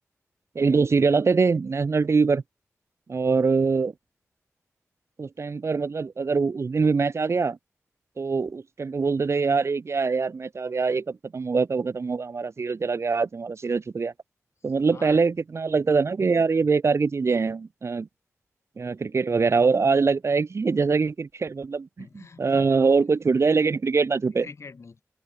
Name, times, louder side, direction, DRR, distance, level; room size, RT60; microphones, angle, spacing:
voice 1, 0.5-2.4 3.1-3.9 5.2-7.6 8.2-14.1 14.6-18.1 18.8-21.9 22.4-24.5, right 4 dB, 55° right, 1.3 m, -23 dB
voice 2, 14.9-15.3 22.0-22.8 24.4-25.0, left 4 dB, 60° left, 3.5 m, -44 dB
open air
wide cardioid pair, 70°, 6 cm